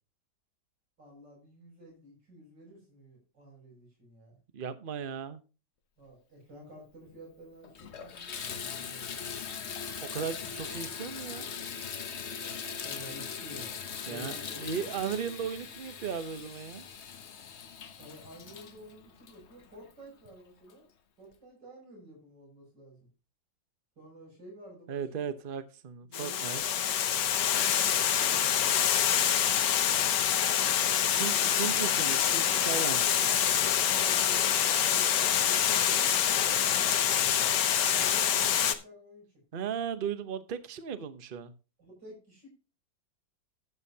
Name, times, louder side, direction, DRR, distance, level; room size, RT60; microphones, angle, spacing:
voice 1, 1.0-4.4 6.0-9.3 12.8-14.8 18.0-20.9 21.2-23.1 24.0-25.3 26.0-26.8 28.3-31.7 33.9-35.1 35.4-37.5 37.9-39.3 41.8-42.5, equal, 65° right, 7.0 m, -51 dB
voice 2, 4.5-5.4 10.0-11.5 14.1-16.9 24.9-26.6 31.1-33.4 39.5-41.5, right 7 dB, 40° right, 0.7 m, -36 dB
Water tap faucet / Bathtub (filling or washing), 7.1-7.2 7.6-20.0 20.7-20.8 21.3-21.4, left 6 dB, 50° left, 0.9 m, -40 dB
Water, 26.1-38.8, left 9 dB, 70° left, 1.5 m, -26 dB
12.0 x 8.8 x 2.8 m
omnidirectional pair, 2.1 m